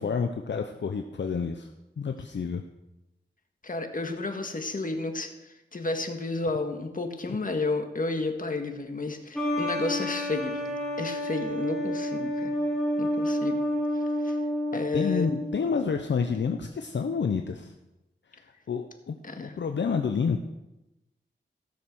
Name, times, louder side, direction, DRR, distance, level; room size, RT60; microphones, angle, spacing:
voice 1, 0.0-1.7 2.0-2.6 7.3-7.4 14.7-17.7 18.3-20.4, left 5 dB, 65° left, 5 dB, 0.8 m, -29 dB
voice 2, 3.6-12.6 13.0-13.6 14.2-14.4 14.7-15.3 19.2-19.6, left 3 dB, 45° left, 5 dB, 1.7 m, -32 dB
sound 1, 9.3-15.7, equal, ahead, 4.5 m, -29 dB
16.0 x 6.7 x 6.1 m, 0.96 s
cardioid pair, 60°, 20 cm